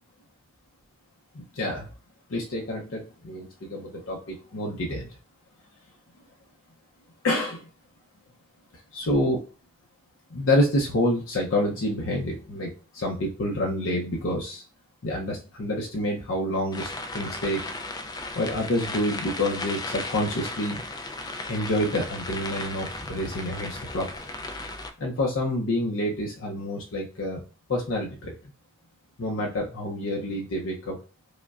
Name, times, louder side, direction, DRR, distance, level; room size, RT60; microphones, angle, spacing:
voice 1, 1.3-1.9 2.3-5.1 7.2-7.7 8.9-9.4 10.3-14.6 15.0-17.6 18.4-20.8 21.5-24.1 25.0-27.4 27.7-28.3 29.2-31.0, left 1 dB, 70° left, -2 dB, 0.6 m, -28 dB
sound 1, 16.7-24.9, left 2 dB, 20° left, 0.3 m, -35 dB
4.9 x 2.1 x 2.4 m, 0.35 s
head